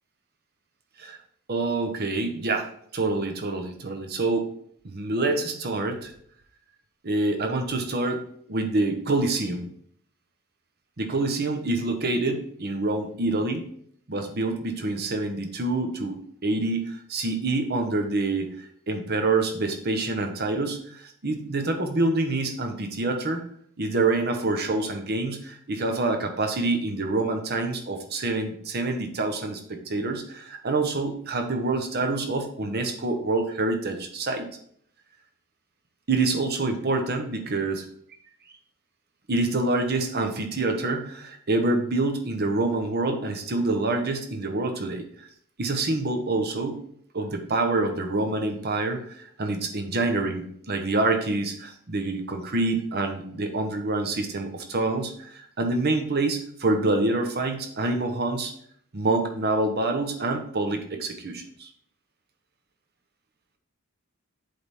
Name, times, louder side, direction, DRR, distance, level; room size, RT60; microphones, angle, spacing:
voice 1, 1.5-4.5 4.8-6.1 7.0-9.7 11.0-13.7 14.1-23.4 23.8-34.4 36.1-37.8 39.3-45.1 45.6-46.8 47.1-58.5 58.9-61.7, right 2 dB, 50° right, 5 dB, 1.0 m, -26 dB
7.7 x 3.5 x 4.2 m, 0.64 s
head